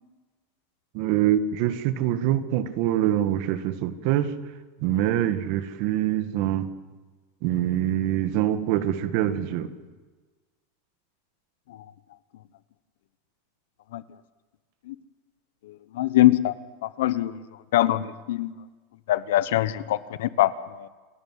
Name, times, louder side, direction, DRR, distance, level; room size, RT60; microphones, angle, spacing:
voice 1, 0.9-4.3 4.8-6.7 7.4-9.7, right 12 dB, 55° right, 11 dB, 1.7 m, -24 dB
voice 2, 15.9-16.5 16.8-17.4 17.7-18.5 19.1-20.9, left 14 dB, 80° left, 15 dB, 1.1 m, -23 dB
28.0 x 13.5 x 9.5 m, 1.3 s
supercardioid pair, 155°, 0 cm